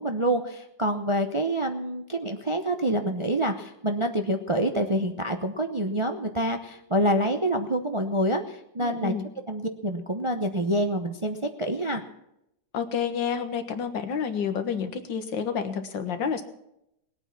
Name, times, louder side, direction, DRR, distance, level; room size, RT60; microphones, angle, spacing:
voice 1, 0.0-9.1 9.5-12.0, right 1 dB, 30° right, 5 dB, 0.5 m, -27 dB
voice 2, 8.8-9.2 12.7-16.4, left 7 dB, 80° left, 8 dB, 2.0 m, -29 dB
20.0 x 8.9 x 5.9 m, 0.82 s
omnidirectional pair, 2.0 m